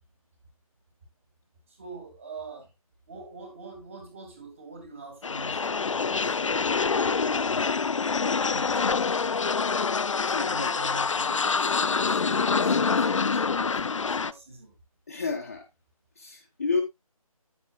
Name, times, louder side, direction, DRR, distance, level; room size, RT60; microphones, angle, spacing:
voice 1, 1.7-2.7 3.1-6.8 7.3-7.7 8.4-9.3 10.4-14.8, right 3 dB, 20° right, 2.5 m, -45 dB
sound 1, 5.2-14.3, left 5 dB, 60° left, 0.5 m, -26 dB
voice 2, 10.2-10.7 15.1-15.6 16.2-16.8, left 4 dB, 25° left, 1.1 m, -30 dB
9.5 x 9.1 x 2.4 m
figure-of-eight pair, 175°, 19 cm